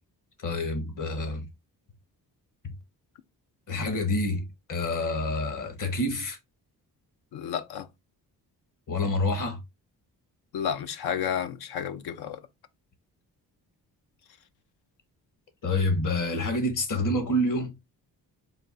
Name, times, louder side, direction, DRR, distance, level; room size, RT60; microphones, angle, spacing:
voice 1, 0.4-1.5 2.6-2.7 3.7-6.4 8.9-9.6 15.6-17.7, left 1 dB, 50° left, 1.3 m, -27 dB
voice 2, 7.3-7.9 10.5-12.5, left 8 dB, 75° left, 0.7 m, -31 dB
3.9 x 2.4 x 3.8 m
cardioid pair, 85°, 39 cm